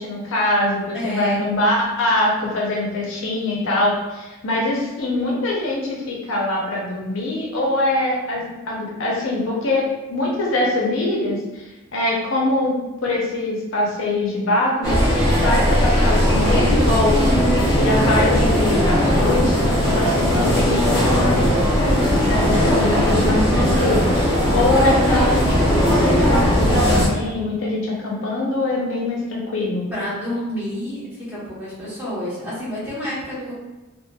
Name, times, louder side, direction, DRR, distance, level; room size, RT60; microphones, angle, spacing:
voice 1, 0.0-11.6 11.9-29.8, left 1 dB, 60° left, -3 dB, 0.5 m, -23 dB
voice 2, 0.9-1.4 8.4-8.5 29.9-33.5, left 1 dB, 10° right, -10 dB, 1.0 m, -29 dB
sound 1, 14.8-27.1, equal, 15° left, 0.7 m, -18 dB
2.9 x 2.8 x 2.2 m, 1.1 s
head